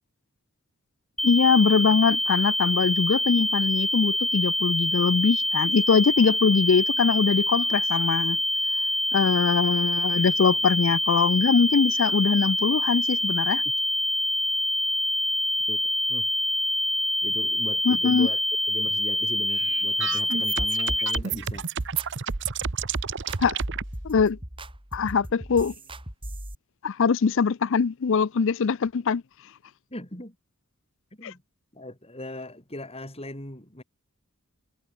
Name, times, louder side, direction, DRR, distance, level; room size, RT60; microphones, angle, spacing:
voice 1, 1.2-8.4 9.1-13.6 17.9-18.3 23.4-23.6 24.0-24.4 24.9-25.7 26.8-29.2 31.2-31.3, left 5 dB, 60° left, 0.5 m, -22 dB
sound 1, 1.2-21.2, left 1 dB, ahead, 1.2 m, -26 dB
voice 2, 17.2-18.4 18.7-21.7 29.9-30.4 31.2-31.4 31.7-33.8, left 1 dB, 25° left, 6.1 m, -39 dB
sound 2, 19.5-23.8, right 6 dB, 55° right, 1.0 m, -30 dB
sound 3, 21.3-26.5, right 1 dB, 25° right, 5.3 m, -39 dB
head